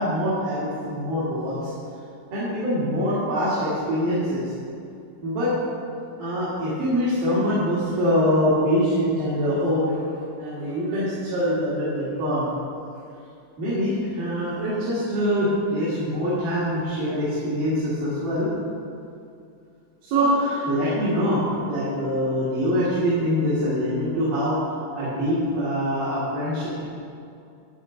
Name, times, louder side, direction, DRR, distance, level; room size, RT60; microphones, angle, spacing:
voice 1, 0.0-1.7 2.3-4.5 5.2-5.5 6.2-12.5 13.6-18.5 20.0-24.6 25.0-26.9, equal, 80° right, -10 dB, 4.0 m, -24 dB
11.5 x 9.8 x 4.0 m, 2.5 s
omnidirectional pair, 3.9 m